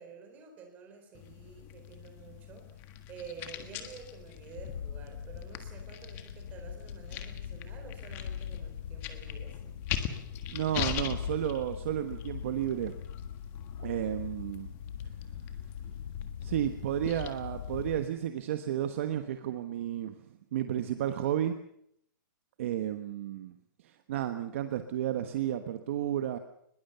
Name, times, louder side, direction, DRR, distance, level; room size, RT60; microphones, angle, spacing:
voice 1, 0.0-2.7 3.1-9.7, right 6 dB, 15° right, 4 dB, 4.2 m, -50 dB
sound 1, 1.1-18.1, left 10 dB, 20° left, 1.5 m, -42 dB
sound 2, 4.6-18.0, left 8 dB, 90° left, 1.4 m, -42 dB
voice 2, 10.5-13.0 13.8-14.7 16.4-20.1 20.5-21.6 22.6-23.5 23.8-26.4, right 11 dB, 40° right, 8 dB, 1.3 m, -32 dB
22.0 x 21.5 x 6.9 m, 0.71 s
hypercardioid pair, 175°, 11 cm